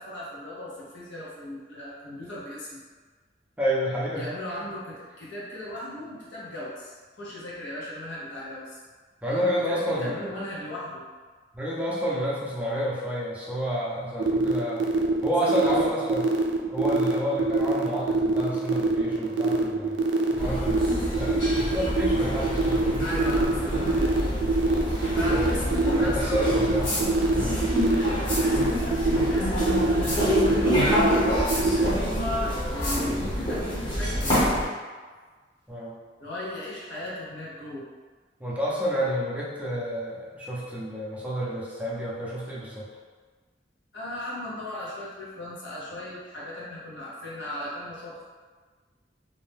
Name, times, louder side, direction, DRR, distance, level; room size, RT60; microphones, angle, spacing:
voice 1, 0.0-2.8 4.1-8.8 9.6-11.0 15.4-15.7 23.0-24.2 25.1-26.7 27.9-30.8 31.3-34.8 36.2-37.9 43.9-48.2, left 1 dB, 90° left, -7 dB, 0.9 m, -36 dB
voice 2, 3.6-4.3 9.2-10.3 11.5-14.9 15.2-16.3 16.7-20.0 20.3-23.0 25.3-25.5 25.8-26.9 27.3-27.6 35.7-36.0 38.4-42.9, equal, 10° right, -7 dB, 0.5 m, -29 dB
sound 1, 14.2-31.9, right 3 dB, 85° right, 0.4 m, -24 dB
sound 2, 20.4-34.7, equal, 25° left, 0.8 m, -27 dB
sound 3, 26.8-27.0 28.3-28.4 30.0-30.2 31.5-31.6 32.8-33.0 34.2-34.4, left 1 dB, 50° left, 1.0 m, -30 dB
2.6 x 2.1 x 3.3 m, 1.4 s
head